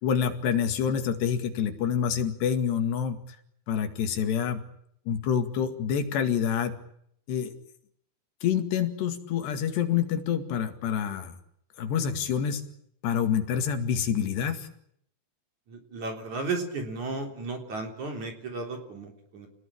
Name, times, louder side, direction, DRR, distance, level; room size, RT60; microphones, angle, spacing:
voice 1, 0.0-3.2 3.7-4.6 5.1-6.7 7.3-7.5 8.4-11.3 11.8-12.7 13.0-14.7, left 8 dB, 75° left, 7 dB, 4.2 m, -27 dB
voice 2, 15.7-19.5, right 3 dB, 45° right, 4 dB, 4.9 m, -34 dB
29.0 x 19.5 x 8.7 m, 0.71 s
omnidirectional pair, 4.9 m